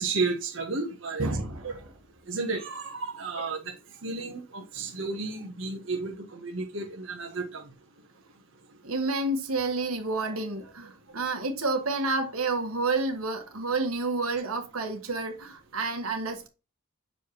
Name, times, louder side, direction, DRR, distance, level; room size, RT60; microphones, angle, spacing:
voice 1, 0.0-1.3 1.6-1.7 2.3-3.7 4.0-7.6, right 3 dB, 60° right, 1.1 m, -32 dB
voice 2, 1.2-1.7 8.8-16.5, right 3 dB, 90° right, 1.6 m, -29 dB
6.7 x 4.9 x 3.1 m
head